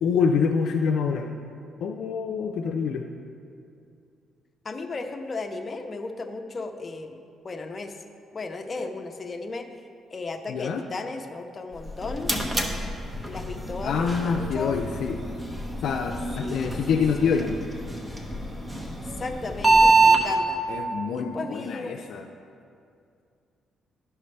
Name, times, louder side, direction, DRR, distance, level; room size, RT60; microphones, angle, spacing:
voice 1, 0.0-1.3 1.8-3.1 10.5-10.8 13.8-15.2 15.8-17.6 20.7-22.3, left 6 dB, 75° left, 2 dB, 0.4 m, -26 dB
voice 2, 4.6-8.0 8.3-9.7 10.1-12.3 13.2-14.8 16.4-16.8 17.2-17.3 19.1-20.6 21.1-22.0, left 3 dB, 35° left, 5 dB, 0.7 m, -35 dB
sound 1, 11.7-20.2, right 3 dB, 15° right, 1.0 m, -25 dB
12.0 x 5.5 x 3.3 m, 2.4 s
cardioid pair, 90°, 0 cm